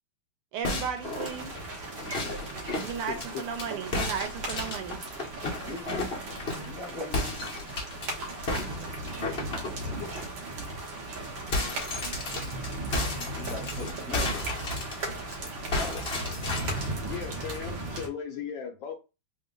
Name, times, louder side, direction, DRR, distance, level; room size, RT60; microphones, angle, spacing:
voice 1, 0.5-1.5 2.8-5.0, right 7 dB, 85° right, 1.7 m, -35 dB
sound 1, 0.6-3.7 3.9-6.7 7.1-8.1 8.5-10.2 10.6-10.8 11.1-15.4 15.7-16.9, left 2 dB, 45° left, 0.8 m, -33 dB
sound 2, 1.0-18.1, right 1 dB, 65° right, 1.5 m, -36 dB
voice 2, 3.1-3.4 15.4-16.0 17.1-18.9, left 7 dB, 75° left, 1.1 m, -38 dB
voice 3, 5.6-6.1 6.6-7.3 13.1-14.4, left 2 dB, 30° left, 1.2 m, -40 dB
3.7 x 2.1 x 3.6 m
omnidirectional pair, 2.4 m